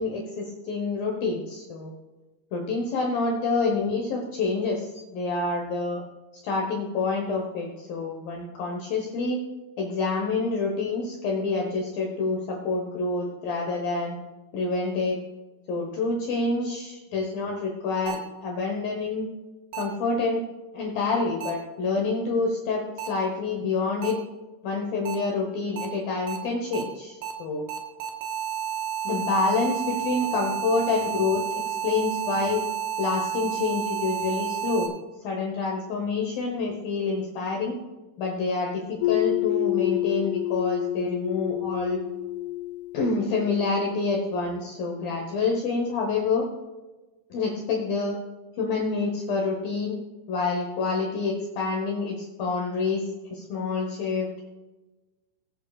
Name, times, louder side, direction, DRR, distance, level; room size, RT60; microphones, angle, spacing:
voice 1, 0.0-1.9 2.5-4.9 5.1-6.0 6.4-9.4 9.8-14.2 14.5-15.2 15.7-19.3 19.7-20.4 20.7-24.2 24.6-27.7 29.0-32.6 33.0-34.9 35.2-37.7 38.2-42.0 42.9-46.4 47.3-48.2 48.6-50.0 50.3-54.3, left 3 dB, 70° left, 0 dB, 2.3 m, -27 dB
sound 1, 18.1-18.2 19.7-19.8 21.4-21.5 23.0-23.1 24.0-24.1 25.1-25.2 25.8-25.9 26.3-26.4 26.7-26.8 27.2-27.3 27.7-34.9, right 9 dB, 85° right, 3.7 m, -31 dB
sound 2, 39.0-43.7, left 16 dB, 90° left, 3.2 m, -28 dB
20.0 x 8.8 x 2.4 m, 1.2 s
omnidirectional pair, 5.5 m